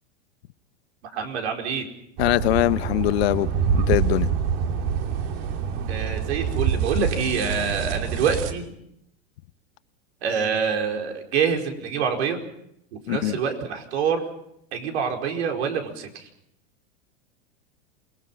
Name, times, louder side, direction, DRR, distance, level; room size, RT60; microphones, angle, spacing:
voice 1, 1.1-1.9 5.9-8.6 10.2-12.4 13.1-14.2 14.7-16.3, right 6 dB, 75° right, 5.0 m, -26 dB
voice 2, 2.2-4.3 13.1-13.4, left 16 dB, 70° left, 1.1 m, -22 dB
sound 1, 2.2-8.5, right 7 dB, 60° right, 2.7 m, -26 dB
28.5 x 20.0 x 5.8 m
supercardioid pair, 135°, 33 cm